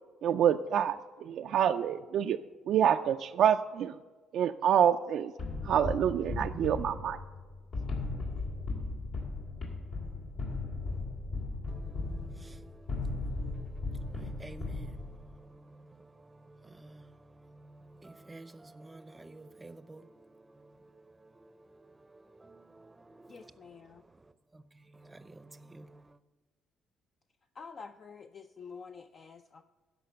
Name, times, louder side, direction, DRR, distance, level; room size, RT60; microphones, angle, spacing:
voice 1, 0.2-2.4 2.7-3.9 4.3-5.3 5.7-7.2, right 9 dB, 70° right, 0.3 m, -27 dB
sound 1, 5.4-15.3, left 3 dB, 70° left, 2.6 m, -37 dB
voice 2, 11.7-23.6 24.5-24.6 24.9-26.2, right 2 dB, 20° right, 0.6 m, -53 dB
voice 3, 23.3-24.0 27.6-29.6, left 5 dB, 45° left, 0.4 m, -48 dB
13.0 x 5.1 x 6.7 m
cardioid pair, 80°, 0 cm